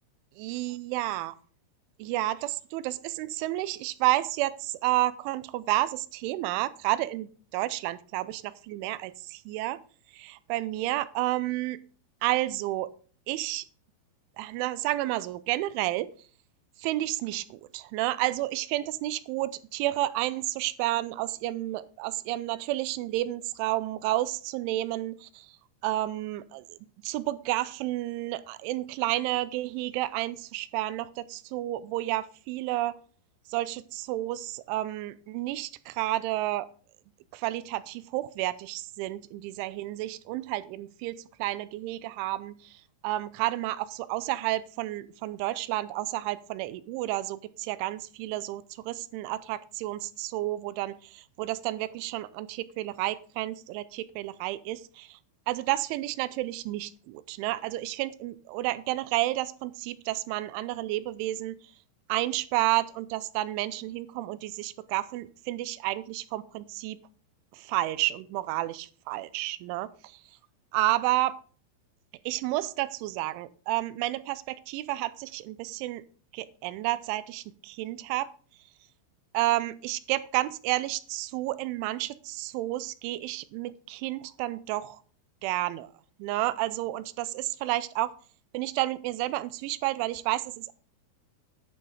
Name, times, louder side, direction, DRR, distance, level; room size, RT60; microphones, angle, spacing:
voice 1, 0.4-1.4 2.0-9.8 10.1-11.8 12.2-12.9 13.3-13.6 14.4-16.1 16.8-25.6 25.8-26.8 27.0-33.0 33.5-36.7 37.3-55.2 55.5-61.6 62.1-67.0 67.5-70.2 70.7-71.4 72.3-76.0 76.3-78.3 79.3-85.0 85.4-85.9 86.2-88.1 88.5-90.7, right 16 dB, 85° right, 17 dB, 3.0 m, -31 dB
11.0 x 7.5 x 4.9 m, 0.41 s
omnidirectional pair, 5.5 m